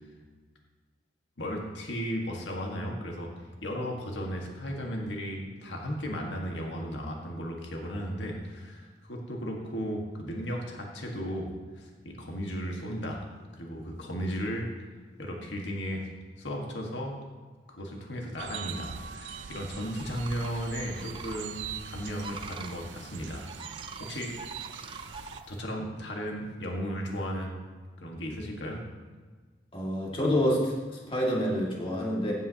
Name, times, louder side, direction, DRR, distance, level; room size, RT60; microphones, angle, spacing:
voice 1, 1.4-3.3 3.6-13.2 13.5-14.7 15.2-16.1 16.4-17.2 17.7-23.5 24.0-24.4 25.5-27.6 28.0-28.8, equal, 90° left, 0 dB, 1.6 m, -35 dB
sound 1, 18.4-25.4, right 7 dB, 85° right, 0.5 m, -42 dB
sound 2, 20.0-25.6, right 3 dB, 30° right, 0.5 m, -45 dB
voice 2, 29.7-32.3, equal, 30° left, -3 dB, 2.1 m, -27 dB
15.5 x 9.2 x 2.9 m, 1.4 s
head